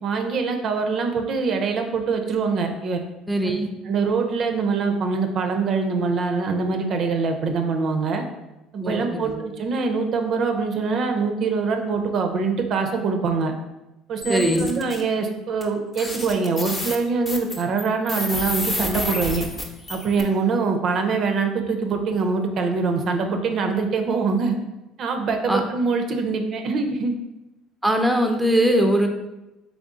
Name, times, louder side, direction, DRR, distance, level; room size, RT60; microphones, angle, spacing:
voice 1, 0.0-3.0 3.4-3.5 3.8-8.2 8.7-13.5 14.1-19.5 19.9-24.6 25.0-27.1, right 4 dB, 50° right, 5 dB, 0.5 m, -24 dB
voice 2, 3.3-3.7 8.8-9.3 14.3-14.7 25.5-25.6 27.8-29.1, equal, 5° right, 3 dB, 0.6 m, -21 dB
sound 1, 14.2-15.0 15.6-15.7 15.9-20.2, left 2 dB, 25° left, 0.8 m, -29 dB
3.6 x 3.5 x 3.7 m, 0.98 s
supercardioid pair, 100°, 0 cm